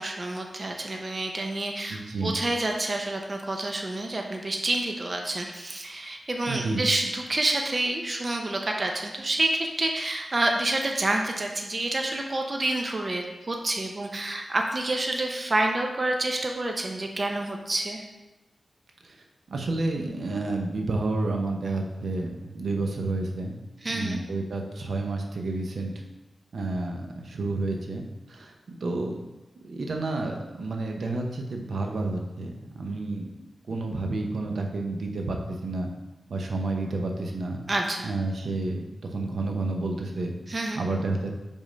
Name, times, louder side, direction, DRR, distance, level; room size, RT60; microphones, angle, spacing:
voice 1, 0.0-18.0 23.8-24.2 37.7-38.1 40.5-40.8, right 2 dB, 35° right, 2 dB, 0.6 m, -28 dB
voice 2, 1.9-2.4 6.4-6.8 19.0-19.2 19.5-23.6 23.9-25.9 26.5-29.2 29.6-33.3 33.7-35.9 36.3-37.6 38.0-40.3 40.7-41.4, right 2 dB, 75° right, 2 dB, 0.8 m, -30 dB
5.2 x 3.7 x 5.1 m, 1.0 s
wide cardioid pair, 95°, 0 cm